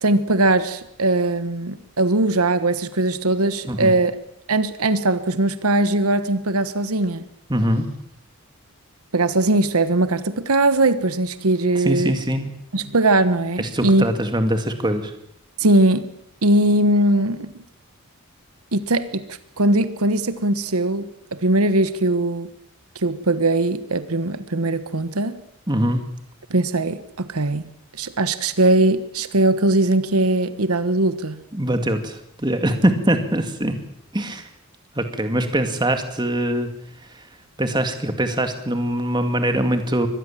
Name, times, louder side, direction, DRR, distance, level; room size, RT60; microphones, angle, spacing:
voice 1, 0.0-4.1 4.5-7.3 9.1-12.1 12.7-14.1 15.6-16.1 16.4-17.5 18.7-21.0 21.4-22.5 22.9-25.4 26.5-27.6 28.0-31.4, right 2 dB, 85° right, 12 dB, 1.3 m, -20 dB
voice 2, 7.5-7.8 11.8-12.5 13.6-15.1 25.7-26.0 31.5-33.7 34.1-34.5 35.0-36.7 37.6-40.1, right 1 dB, 20° right, 6 dB, 2.3 m, -22 dB
24.0 x 19.0 x 7.4 m, 0.72 s
head